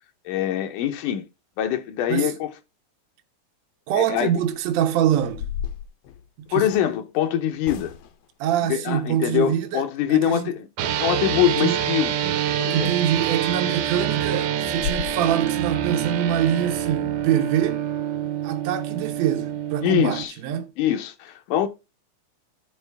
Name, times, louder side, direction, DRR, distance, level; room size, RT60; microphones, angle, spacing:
voice 1, 0.3-1.2 1.6-2.5 4.0-4.3 6.5-7.9 8.7-10.7 11.0-12.1 12.6-13.0 19.8-20.3 20.8-21.7, left 11 dB, 85° left, 2.4 m, -23 dB
voice 2, 3.9-5.5 6.5-6.7 8.4-9.8 10.1-10.5 11.5-11.8 12.7-17.9 18.4-20.7, right 10 dB, 65° right, 2.0 m, -24 dB
sound 1, 4.6-4.7 5.1-6.9 7.6-8.3 12.8-12.9 13.4-13.5 13.9-14.0 14.4-14.5 14.7-15.1, left 8 dB, 70° left, 1.6 m, -34 dB
sound 2, 10.8-20.2, right 10 dB, 85° right, 2.3 m, -26 dB
13.0 x 4.9 x 3.4 m
omnidirectional pair, 3.6 m